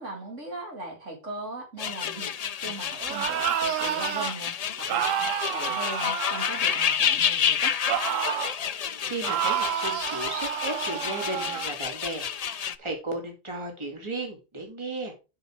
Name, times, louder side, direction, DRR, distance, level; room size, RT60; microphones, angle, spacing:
voice 1, 0.0-2.3 2.6-5.1 5.5-7.8, right 2 dB, 65° right, 2 dB, 2.6 m, -39 dB
sound 1, 1.8-12.8, left 8 dB, 70° left, 0.3 m, -29 dB
sound 2, 3.0-4.3 4.9-7.2 7.9-8.6 9.2-11.7, right 10 dB, 80° right, 1.0 m, -29 dB
voice 2, 9.0-15.1, right 2 dB, 20° right, 2 dB, 2.4 m, -35 dB
7.6 x 6.2 x 4.7 m, 0.30 s
omnidirectional pair, 1.4 m